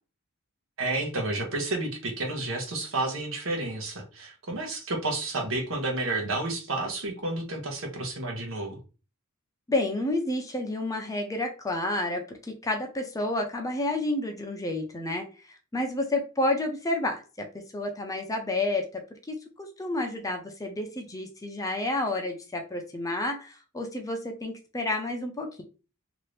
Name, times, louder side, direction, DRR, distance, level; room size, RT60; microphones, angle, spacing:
voice 1, 0.8-8.8, right 2 dB, 65° right, 2 dB, 1.0 m, -31 dB
voice 2, 9.7-15.5 15.7-17.5 17.7-18.9 19.3-25.6, left 2 dB, 15° left, 3 dB, 0.5 m, -30 dB
2.8 x 2.5 x 3.2 m, 0.33 s
head